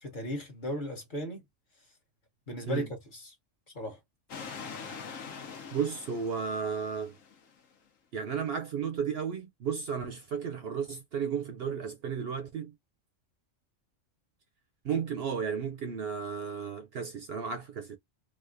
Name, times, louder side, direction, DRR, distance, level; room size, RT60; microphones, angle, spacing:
voice 1, 0.0-1.4 2.5-3.3 3.7-4.0, left 1 dB, 40° left, 1.1 m, -36 dB
sound 1, 4.3-7.6, left 6 dB, 85° left, 1.2 m, -44 dB
voice 2, 5.7-7.1 8.1-12.7 14.8-18.0, right 7 dB, 60° right, 0.7 m, -33 dB
4.1 x 2.5 x 2.5 m
omnidirectional pair, 1.3 m